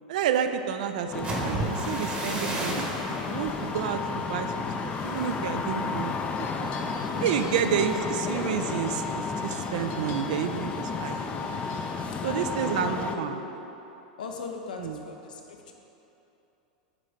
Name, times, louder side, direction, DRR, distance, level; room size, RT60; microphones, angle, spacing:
voice 1, 0.1-2.9 3.3-6.5 7.1-11.5 12.2-13.4 14.8-15.0, right 8 dB, 70° right, 8 dB, 0.4 m, -30 dB
voice 2, 0.9-1.4 5.7-6.1 7.6-8.5 12.2-13.6 14.2-15.7, left 4 dB, 85° left, 2 dB, 0.7 m, -40 dB
sound 1, 1.1-13.2, left 4 dB, 30° left, 0.4 m, -32 dB
sound 2, 1.1-8.9 9.3-9.6 10.0-10.4, right 2 dB, 30° right, 1.1 m, -37 dB
sound 3, 3.2-12.0, left 3 dB, 50° left, 0.8 m, -47 dB
7.5 x 3.0 x 5.0 m, 3.0 s
hypercardioid pair, 105°, 4 cm